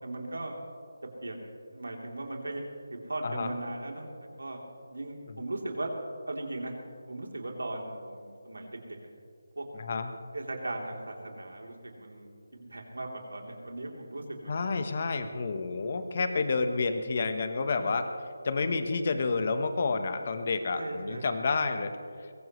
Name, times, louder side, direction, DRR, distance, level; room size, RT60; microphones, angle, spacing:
voice 1, 0.0-0.6 1.2-1.4 1.7-2.6 2.9-4.1 4.4-5.9 6.3-6.7 7.1-9.0 9.5-9.6 10.3-14.5 20.8-21.3, right 2 dB, 85° right, 0 dB, 3.4 m, -38 dB
voice 2, 9.8-10.1 14.5-18.1 18.4-21.9, left 4 dB, 40° left, 8 dB, 1.1 m, -29 dB
22.5 x 16.5 x 3.2 m, 2.3 s
figure-of-eight pair, 170°, 0 cm